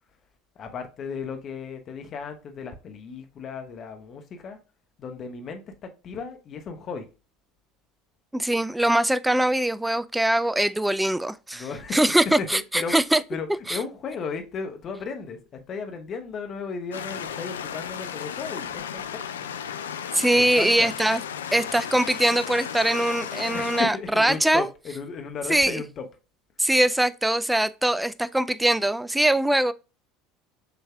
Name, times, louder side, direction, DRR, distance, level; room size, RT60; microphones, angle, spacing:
voice 1, 0.6-4.6 5.0-7.1 11.5-19.5 20.3-20.9 23.4-26.0, left 5 dB, 40° left, 1.0 m, -35 dB
voice 2, 8.3-11.6 11.9-13.2 13.7-13.8 20.1-21.2 21.5-24.7 25.5-25.8 26.6-29.7, right 1 dB, 5° right, 0.4 m, -22 dB
sound 1, 16.9-23.8, left 8 dB, 80° left, 0.3 m, -34 dB
6.8 x 3.2 x 2.3 m
figure-of-eight pair, 70°, 0 cm